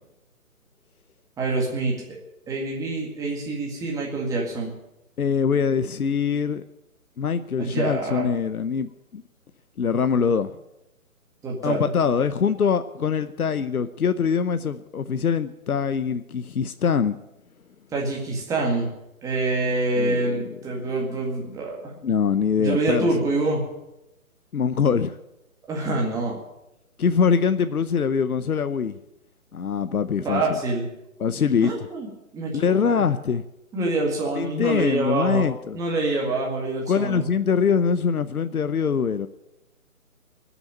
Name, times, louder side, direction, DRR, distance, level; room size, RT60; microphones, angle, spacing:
voice 1, 1.4-1.9 2.5-4.7 7.6-8.3 11.4-11.9 17.9-18.9 19.2-21.9 22.6-23.6 25.7-26.4 30.2-30.9 31.6-32.1 32.3-33.0 33.7-35.4 35.7-37.3, right 2 dB, 10° right, -1 dB, 2.0 m, -26 dB
voice 2, 5.2-6.6 7.2-9.2 9.8-10.5 11.6-17.2 19.9-20.6 22.0-23.1 24.5-25.2 27.0-29.0 29.5-30.6 31.2-31.7 32.5-33.4 34.4-35.8 36.9-39.3, left 6 dB, 85° left, 12 dB, 0.9 m, -23 dB
20.0 x 7.1 x 8.8 m, 0.90 s
figure-of-eight pair, 150°, 43 cm